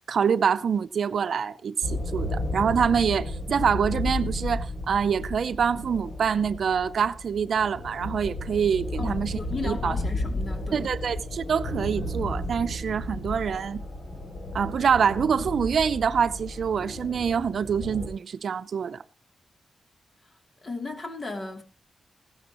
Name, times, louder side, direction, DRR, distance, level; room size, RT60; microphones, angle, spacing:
voice 1, 0.1-9.9 10.7-13.8 14.5-19.0, right 7 dB, 70° right, 0.6 m, -25 dB
sound 1, 1.8-18.1, left 1 dB, 70° left, 5.7 m, -33 dB
voice 2, 9.0-10.9 20.6-21.6, left 3 dB, 40° left, 2.9 m, -35 dB
16.0 x 13.5 x 3.0 m
cardioid pair, 80°, 0 cm